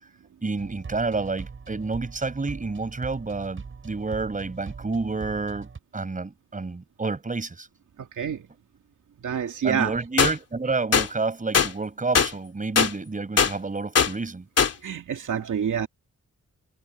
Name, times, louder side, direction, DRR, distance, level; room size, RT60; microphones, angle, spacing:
voice 1, 0.4-7.7 9.6-14.5, right 3 dB, 25° right, 5.7 m, -29 dB
sound 1, 0.6-5.8, right 5 dB, 45° right, 7.0 m, -41 dB
voice 2, 8.0-8.5 9.2-9.9 14.8-15.9, right 8 dB, 90° right, 2.5 m, -27 dB
sound 2, 10.2-10.3 10.9-11.1 11.5-11.7 12.1-12.3 12.8-12.9 13.4-13.5 13.9-14.1 14.6-14.7, left 6 dB, 55° left, 2.9 m, -19 dB
wide cardioid pair, 170°, 30 cm